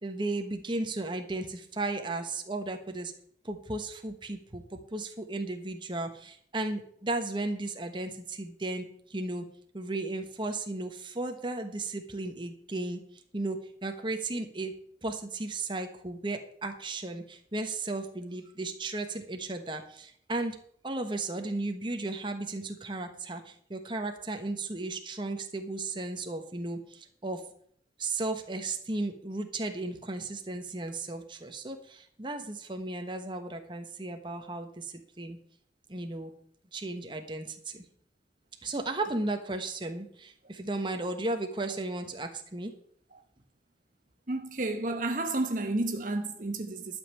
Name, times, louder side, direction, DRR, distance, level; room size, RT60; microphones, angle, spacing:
voice 1, 0.0-3.1 3.4-9.4 9.7-13.0 13.3-14.7 15.0-20.6 20.8-27.4 28.0-35.4 35.9-36.3 36.7-37.8 38.6-42.7, right 2 dB, 25° right, 1.2 m, -35 dB
voice 2, 44.3-47.0, right 2 dB, 50° right, 1.0 m, -31 dB
12.0 x 5.5 x 8.2 m
head